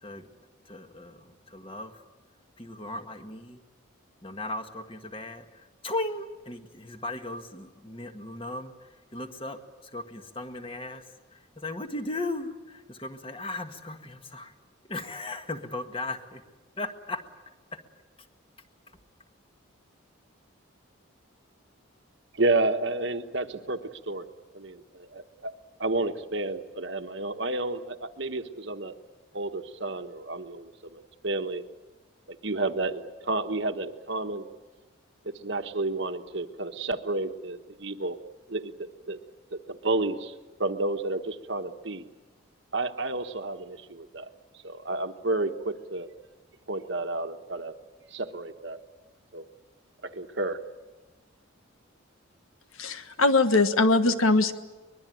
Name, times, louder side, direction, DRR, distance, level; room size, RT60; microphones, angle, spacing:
voice 1, 0.6-2.0 2.6-3.6 4.2-11.1 11.3-14.5 14.9-16.4 16.8-17.2 17.7-17.8, left 2 dB, 25° left, 6 dB, 1.6 m, -37 dB
voice 2, 22.3-24.3 24.5-25.5 25.8-28.9 29.3-31.6 32.3-34.5 35.2-38.2 38.5-38.7 39.1-39.2 39.5-40.3 40.6-42.1 42.7-44.3 44.6-46.1 46.7-47.7 48.1-48.8 49.3-49.4 50.0-50.6, right 2 dB, 55° right, 8 dB, 1.2 m, -31 dB
voice 3, 52.8-54.5, left 3 dB, 80° left, 10 dB, 1.4 m, -21 dB
23.5 x 21.5 x 9.3 m, 1.2 s
head